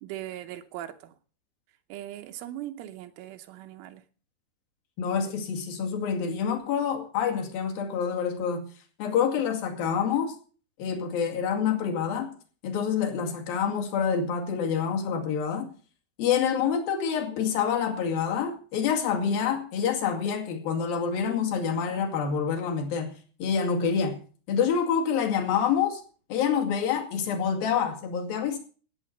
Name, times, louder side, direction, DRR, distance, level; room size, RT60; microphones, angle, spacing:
voice 1, 0.0-1.1 1.9-4.0, right 13 dB, 85° right, 3.3 m, -39 dB
voice 2, 5.0-8.6 9.0-10.3 10.8-12.3 12.6-15.7 16.2-23.1 23.4-24.2 24.5-26.0 26.3-28.6, left 7 dB, 55° left, 3.7 m, -27 dB
17.0 x 8.8 x 6.5 m
omnidirectional pair, 5.5 m